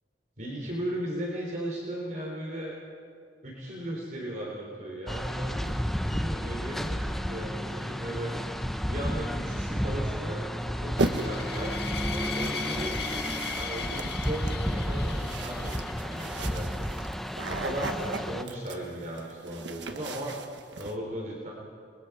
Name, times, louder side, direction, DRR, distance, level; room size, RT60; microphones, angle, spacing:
voice 1, 0.4-2.8 3.4-8.4 8.9-10.4 10.7-11.7 12.1-12.9 13.6-16.7 17.5-20.3 20.8-21.5, right 1 dB, 45° right, -3 dB, 3.7 m, -37 dB
sound 1, 5.1-18.4, equal, ahead, 0.7 m, -32 dB
sound 2, 11.0-16.2, left 6 dB, 65° left, 1.6 m, -38 dB
sound 3, 11.0-11.5 12.4-20.9, right 2 dB, 90° right, 1.3 m, -36 dB
30.0 x 21.5 x 4.9 m, 2.2 s
head